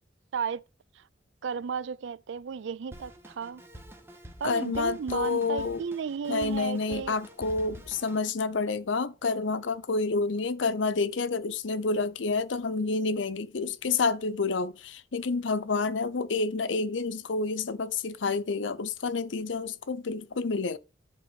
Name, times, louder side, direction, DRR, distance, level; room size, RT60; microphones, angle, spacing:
voice 1, 1.4-3.6 4.4-7.1, right 6 dB, 80° right, 0.4 m, -34 dB
Drum kit, 2.9-8.3, equal, 15° right, 1.1 m, -48 dB
voice 2, 4.4-5.8 6.3-20.8, left 4 dB, 85° left, 0.7 m, -29 dB
10.5 x 4.1 x 5.2 m
head